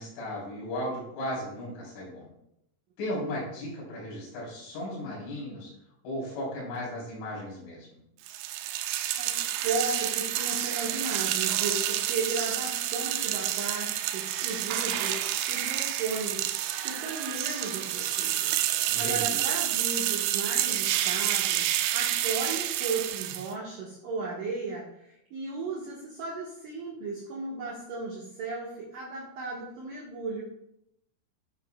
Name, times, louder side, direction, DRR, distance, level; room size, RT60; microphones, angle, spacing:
voice 1, 0.0-2.3 3.0-5.7 6.0-8.0 18.9-19.4, left 1 dB, 75° left, -6 dB, 6.3 m, -36 dB
sound 1, 8.3-23.5, right 12 dB, 90° right, 2.4 m, -29 dB
voice 2, 9.2-15.2 15.5-30.4, right 3 dB, 60° right, -5 dB, 2.4 m, -35 dB
10.5 x 9.5 x 2.4 m, 0.79 s
omnidirectional pair, 5.6 m